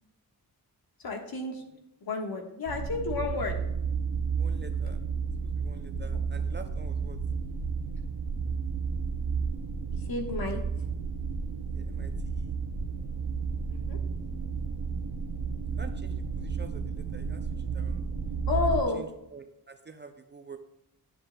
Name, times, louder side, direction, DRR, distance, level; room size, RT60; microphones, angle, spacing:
voice 1, 1.0-1.6 2.0-3.6 9.9-10.6 13.7-14.0 18.5-19.0, left 4 dB, 60° left, 3 dB, 1.3 m, -31 dB
sound 1, 2.7-18.8, right 5 dB, 75° right, 0.8 m, -32 dB
voice 2, 4.4-5.0 5.4-7.2 11.7-12.5 15.8-18.0 18.9-20.6, right 4 dB, 30° right, 6 dB, 0.4 m, -47 dB
9.9 x 7.5 x 2.2 m, 0.85 s
wide cardioid pair, 150°, 40 cm